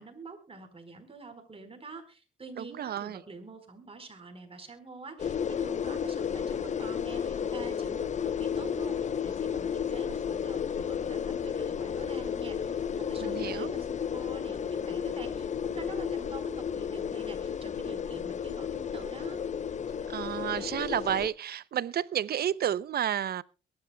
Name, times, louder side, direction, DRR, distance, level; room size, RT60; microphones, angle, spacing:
voice 1, 0.0-19.4, right 3 dB, 30° right, 4.3 m, -46 dB
voice 2, 2.6-3.2 13.2-13.7 20.1-23.4, right 10 dB, 55° right, 0.6 m, -31 dB
sound 1, 5.2-21.3, left 7 dB, 35° left, 0.6 m, -33 dB
23.0 x 11.5 x 2.2 m
cardioid pair, 90°, 20 cm